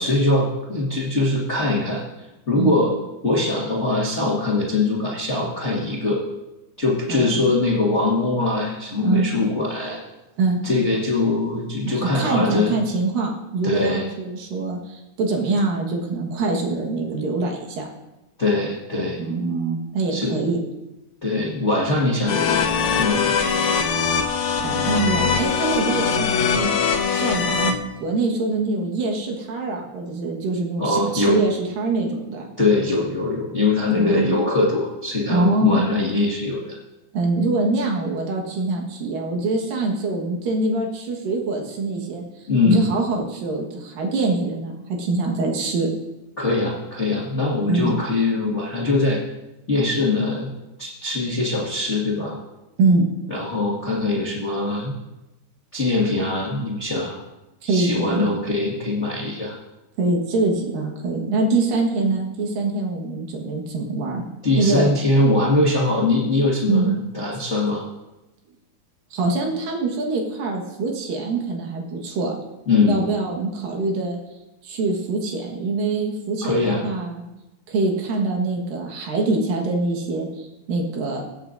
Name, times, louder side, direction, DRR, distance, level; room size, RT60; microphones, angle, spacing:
voice 1, 0.0-2.9 3.2-6.2 6.8-10.0 10.6-12.7 13.6-14.0 18.4-19.2 20.1-20.3 21.2-22.6 22.9-23.4 30.8-31.4 32.6-36.8 42.5-42.8 46.4-49.2 49.7-50.5 50.8-52.4 53.3-54.9 55.7-57.1 57.6-59.5 64.4-67.8 72.7-73.0 76.4-76.8, left 2 dB, 50° left, -5 dB, 0.8 m, -22 dB
voice 2, 7.1-7.5 9.0-9.3 10.4-10.6 12.0-17.8 19.2-20.6 24.0-24.1 24.6-32.5 33.9-34.4 35.3-35.9 37.1-44.7 45.0-45.9 47.7-48.0 52.8-53.1 57.6-58.3 60.0-64.2 64.6-64.9 66.7-66.9 69.1-72.4 72.9-74.2 74.6-77.2 77.7-81.2, right 3 dB, 70° right, 0 dB, 3.1 m, -24 dB
sound 1, 22.3-27.7, left 6 dB, 70° left, 1.8 m, -22 dB
23.5 x 8.9 x 2.6 m, 0.99 s
omnidirectional pair, 4.3 m